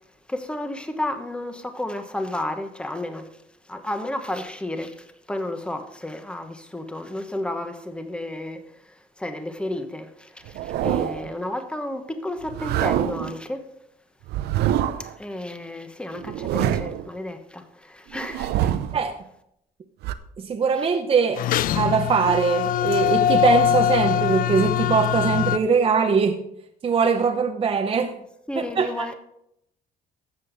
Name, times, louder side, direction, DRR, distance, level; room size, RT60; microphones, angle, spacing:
voice 1, 0.3-3.3 3.7-13.7 15.0-18.7 28.5-29.1, left 1 dB, 5° left, 1.1 m, -32 dB
sound 1, 10.4-11.3 12.4-13.3 14.3-15.1 16.1-17.1 18.1-19.0 20.0-20.1, right 11 dB, 75° right, 0.7 m, -25 dB
voice 2, 20.4-21.4 21.7-26.4 26.8-28.1 28.6-29.1, right 5 dB, 35° right, 0.8 m, -21 dB
sound 2, 21.4-25.6, left 10 dB, 55° left, 0.4 m, -22 dB
13.0 x 7.6 x 4.0 m
cardioid pair, 110°, 17 cm